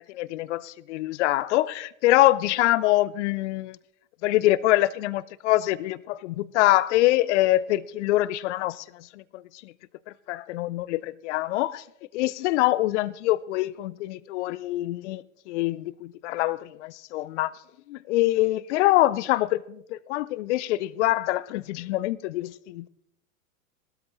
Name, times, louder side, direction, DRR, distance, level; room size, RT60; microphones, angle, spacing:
voice 1, 0.1-3.8 4.2-9.7 10.3-11.8 12.1-17.5 17.9-22.9, left 16 dB, 60° left, 0.6 m, -25 dB
18.5 x 13.0 x 3.1 m
hypercardioid pair, 95°, 41 cm